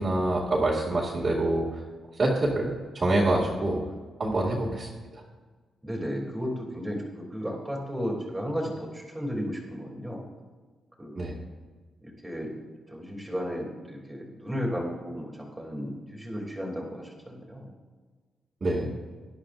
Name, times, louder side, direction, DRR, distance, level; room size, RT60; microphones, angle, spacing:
voice 1, 0.0-1.7 2.2-2.7 2.9-3.8 4.2-4.9 11.1-11.3 18.6-18.9, right 2 dB, 40° right, -6 dB, 2.2 m, -25 dB
voice 2, 5.8-10.2 11.0-11.2 12.0-12.5 12.9-17.7, equal, 10° right, 0 dB, 2.8 m, -34 dB
18.0 x 11.5 x 2.6 m, 1.4 s
cardioid pair, 105°, 0 cm